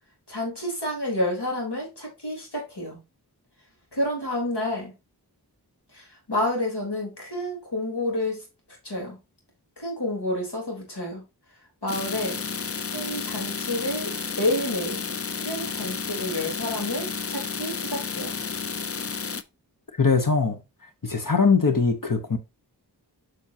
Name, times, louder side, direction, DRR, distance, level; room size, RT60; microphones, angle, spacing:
voice 1, 0.3-3.0 3.9-5.0 5.9-8.4 8.8-9.2 9.8-11.2 11.8-12.4 12.8-15.0 15.4-18.4, left 1 dB, 75° left, 3.7 m, -29 dB
sound 1, 11.9-19.4, left 5 dB, 35° left, 0.5 m, -31 dB
voice 2, 19.9-20.6 21.0-22.4, left 4 dB, 55° left, 1.1 m, -21 dB
7.4 x 6.3 x 2.8 m
wide cardioid pair, 40°, 40 cm